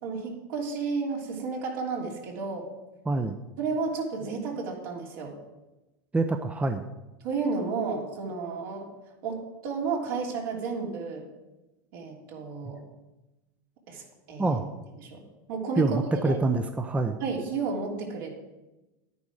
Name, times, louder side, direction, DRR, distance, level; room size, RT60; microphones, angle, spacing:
voice 1, 0.0-2.7 3.6-5.4 7.2-8.9 9.2-11.3 11.9-12.8 13.9-14.6 15.0-15.2 15.5-16.4 17.2-18.4, right 4 dB, 65° right, -1 dB, 3.2 m, -32 dB
voice 2, 3.1-3.4 6.1-6.9 14.4-14.6 15.8-17.2, right 2 dB, 10° right, 7 dB, 0.7 m, -26 dB
10.5 x 9.5 x 4.9 m, 1.0 s
hypercardioid pair, 110°, 12 cm